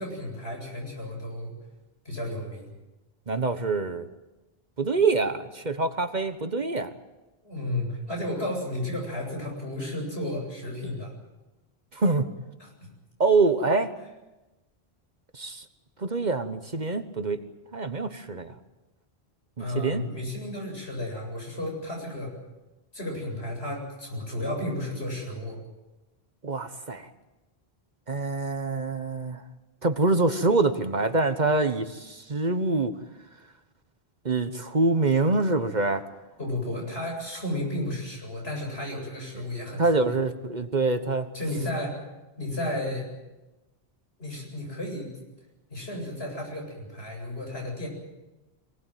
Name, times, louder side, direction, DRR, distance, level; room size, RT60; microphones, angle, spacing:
voice 1, 0.0-1.5 2.0-2.7 7.4-11.1 12.6-12.7 19.6-22.3 22.9-25.6 36.4-40.1 41.3-42.0 42.4-43.1 44.2-45.1 45.7-47.9, left 1 dB, 80° left, 0 dB, 8.5 m, -33 dB
voice 2, 3.3-4.1 4.8-6.9 11.9-12.3 13.2-13.9 15.3-15.6 16.0-17.4 17.7-18.5 19.6-20.0 26.4-27.1 28.1-29.4 29.8-32.9 34.2-36.0 39.8-41.3, right 3 dB, 45° right, 9 dB, 1.3 m, -25 dB
24.5 x 18.0 x 9.3 m, 1.1 s
omnidirectional pair, 1.1 m